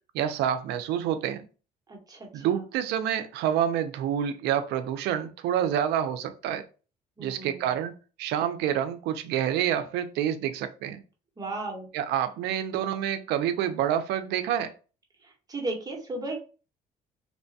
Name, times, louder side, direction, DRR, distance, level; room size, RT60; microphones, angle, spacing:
voice 1, 0.1-1.5 2.3-6.6 7.2-11.0 11.9-14.7, right 10 dB, 80° right, 0.4 m, -28 dB
voice 2, 1.9-2.6 7.2-7.8 11.4-11.9 15.2-16.4, right 2 dB, 20° right, 1.0 m, -35 dB
2.9 x 2.2 x 2.6 m
cardioid pair, 110°, 17 cm